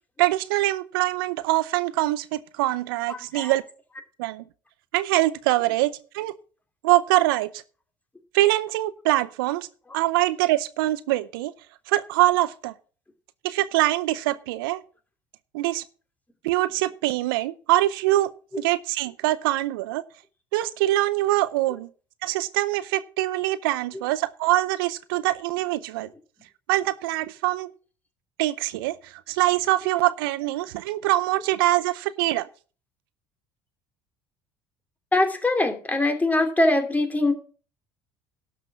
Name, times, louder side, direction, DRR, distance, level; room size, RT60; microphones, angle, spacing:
voice 1, 0.2-3.6 4.2-4.4 4.9-6.3 6.8-7.6 8.3-9.7 9.9-11.5 11.9-12.7 13.4-14.8 15.5-15.8 16.4-20.0 20.5-21.9 22.2-26.1 26.7-27.7 28.4-32.5, right 16 dB, 75° right, 16 dB, 0.6 m, -24 dB
voice 2, 35.1-37.3, left 2 dB, 15° left, 5 dB, 2.8 m, -22 dB
12.0 x 5.9 x 6.1 m, 0.37 s
hypercardioid pair, 65°, 12 cm